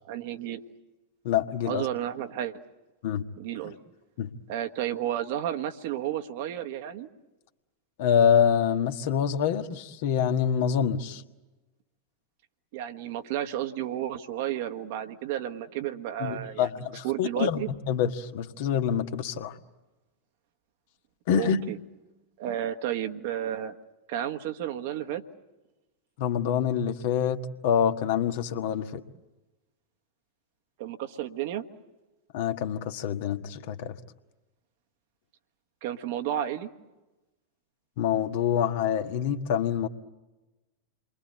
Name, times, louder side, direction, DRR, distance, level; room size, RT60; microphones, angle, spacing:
voice 1, 0.1-0.6 1.6-2.6 3.4-3.8 4.5-7.1 12.7-16.7 17.0-17.7 21.3-21.8 22.4-23.7 24.1-25.2 30.8-31.7 35.8-36.7, right 11 dB, 50° right, 7 dB, 1.4 m, -32 dB
voice 2, 1.2-1.8 3.0-3.2 4.2-4.3 8.0-11.2 16.2-19.5 21.3-21.6 26.2-29.0 32.3-33.9 38.0-39.9, left 8 dB, 50° left, 7 dB, 1.5 m, -26 dB
29.0 x 23.5 x 8.0 m, 1.1 s
figure-of-eight pair, 90°, 0 cm